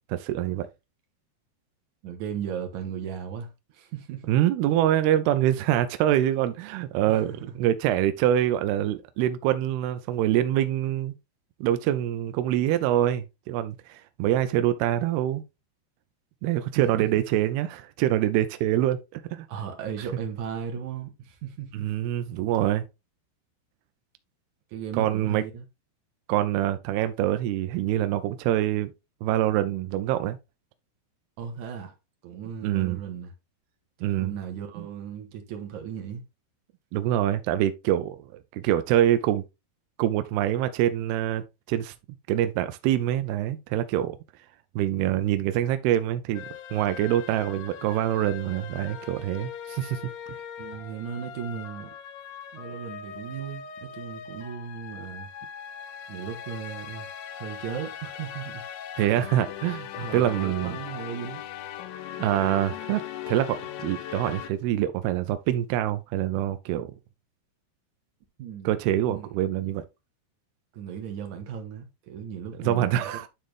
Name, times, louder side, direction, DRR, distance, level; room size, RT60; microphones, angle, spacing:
voice 1, 0.1-0.7 4.3-7.3 7.6-11.2 11.6-15.4 16.4-19.5 21.7-22.8 24.9-25.4 26.3-28.9 29.2-30.4 32.6-33.0 34.0-34.3 34.8-34.9 36.9-38.3 38.5-39.4 40.0-41.9 42.3-44.2 44.8-46.5 46.7-50.0 59.0-60.8 62.2-66.9 68.7-69.8 72.6-73.3, right 12 dB, 85° right, 2.3 m, -25 dB
voice 2, 2.0-4.2 7.1-7.5 16.8-17.2 19.5-21.9 24.7-25.7 31.4-31.9 32.2-33.3 34.2-36.2 50.6-51.9 52.5-55.3 56.1-58.7 60.0-61.4 68.4-68.8 69.1-69.3 70.7-73.1, right 8 dB, 60° right, 2.2 m, -36 dB
sound 1, 46.3-64.5, left 9 dB, 80° left, 2.1 m, -40 dB
11.0 x 3.8 x 3.3 m
omnidirectional pair, 5.0 m